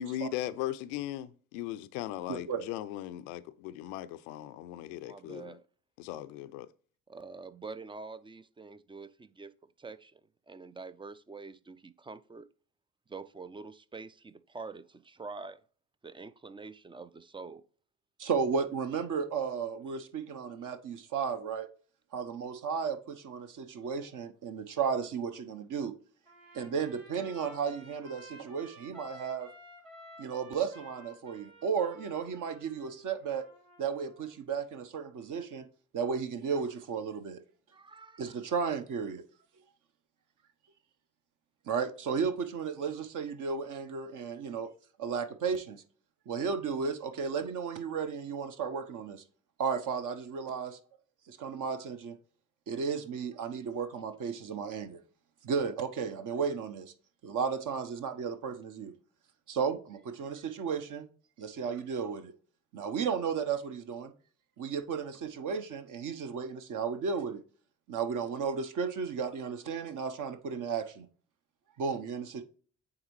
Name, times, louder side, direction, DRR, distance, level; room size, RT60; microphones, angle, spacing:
voice 1, 0.0-5.6 6.0-6.7, left 12 dB, 70° left, 0.5 m, -38 dB
voice 2, 2.3-2.6 18.2-21.7 22.1-25.9 26.5-29.5 30.2-33.4 33.8-35.7 35.9-37.4 38.2-39.2 41.7-44.7 45.0-45.8 46.3-49.2 49.6-50.8 51.3-52.2 52.7-55.0 55.4-56.9 57.2-58.9 59.5-61.1 61.4-62.3 62.7-64.1 64.6-67.4 67.9-71.1 71.8-72.4, right 6 dB, 50° right, 0.9 m, -34 dB
voice 3, 5.0-5.6 7.1-10.2 10.5-12.5 13.1-15.6 16.0-17.6 37.7-38.3, right 4 dB, 15° right, 0.4 m, -46 dB
Trumpet, 26.3-34.4, equal, 85° right, 1.7 m, -53 dB
8.8 x 3.6 x 3.1 m
hypercardioid pair, 45°, 40 cm